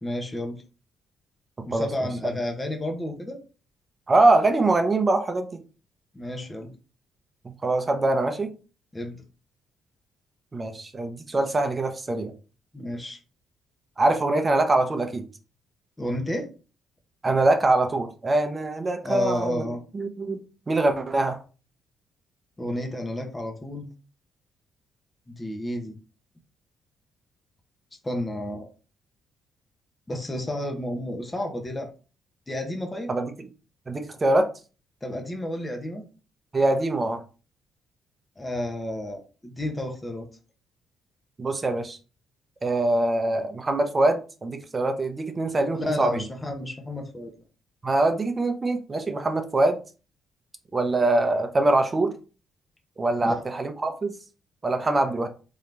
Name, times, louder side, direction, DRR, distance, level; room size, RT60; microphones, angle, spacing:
voice 1, 0.0-0.6 1.7-3.4 6.1-6.7 8.9-9.2 12.7-13.2 16.0-16.5 19.0-19.8 22.6-23.9 25.3-26.0 28.0-28.7 30.1-31.9 32.5-33.1 35.0-36.0 38.4-40.3 45.7-47.3 53.2-53.4, left 1 dB, 20° left, 3 dB, 1.0 m, -31 dB
voice 2, 1.6-1.9 4.1-5.6 7.4-8.5 10.5-12.3 14.0-15.2 17.2-19.6 19.9-20.4 20.7-21.4 33.1-33.3 33.9-34.5 36.5-37.2 41.4-42.0 42.6-46.2 47.8-49.8 50.7-52.1 53.0-54.1 54.6-55.3, right 2 dB, 25° right, 6 dB, 0.7 m, -23 dB
3.8 x 2.9 x 3.3 m, 0.34 s
cardioid pair, 90°, 0 cm